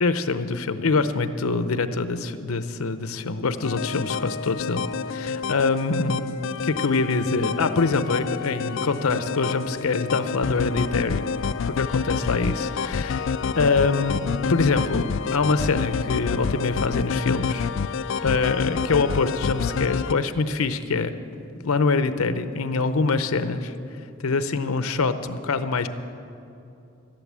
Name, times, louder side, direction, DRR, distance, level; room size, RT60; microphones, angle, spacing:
voice 1, 0.0-4.8 5.1-6.2 6.6-11.3 11.7-14.2 14.5-17.7 18.2-21.1 21.6-23.7 24.2-25.9, left 4 dB, 90° left, 11 dB, 0.7 m, -24 dB
sound 1, 3.6-20.1, left 6 dB, 60° left, 0.3 m, -28 dB
12.0 x 12.0 x 7.4 m, 2.7 s
head